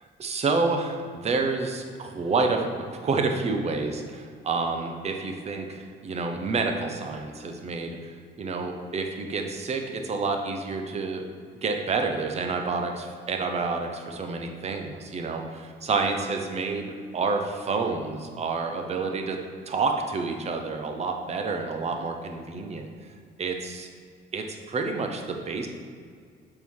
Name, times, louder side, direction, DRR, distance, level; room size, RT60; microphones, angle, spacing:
voice 1, 0.0-11.3 11.6-19.4 19.7-22.9 23.4-23.9 24.3-25.7, right 4 dB, 35° right, 4 dB, 0.7 m, -29 dB
6.7 x 5.4 x 4.7 m, 2.1 s
cardioid pair, 160°, 19 cm